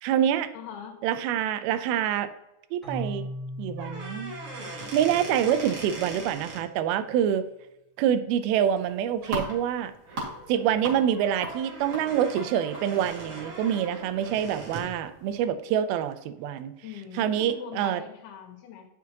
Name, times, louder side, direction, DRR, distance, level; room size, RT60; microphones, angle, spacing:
voice 1, 0.0-0.5 1.0-2.3 2.7-3.3 3.6-4.3 4.9-7.5 8.0-9.9 10.5-16.7 17.2-18.0, right 9 dB, 85° right, 11 dB, 2.5 m, -26 dB
voice 2, 0.5-1.0 16.8-18.9, left 8 dB, 85° left, 3 dB, 3.1 m, -41 dB
Keyboard (musical), 2.8-6.5, equal, ahead, 2.0 m, -40 dB
sound 1, 3.7-6.6 8.8-8.9 9.2-9.5 10.0-15.0, right 2 dB, 60° right, 1.6 m, -40 dB
sound 2, 8.7-15.5, right 1 dB, 35° right, 2.2 m, -41 dB
9.3 x 6.3 x 2.8 m, 0.89 s
omnidirectional pair, 4.4 m